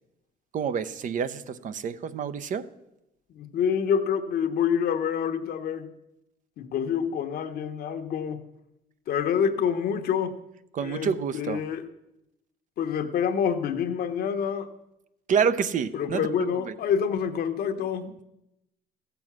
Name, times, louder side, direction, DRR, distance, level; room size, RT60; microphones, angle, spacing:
voice 1, 0.5-2.7 10.7-11.6 15.3-16.3 16.5-16.7, right 7 dB, 50° right, 0.7 m, -28 dB
voice 2, 3.3-5.9 6.6-8.5 9.1-10.4 10.8-11.8 12.8-14.7 15.9-18.2, left 7 dB, 65° left, 1.1 m, -27 dB
14.5 x 7.0 x 6.1 m
cardioid pair, 110°, 17 cm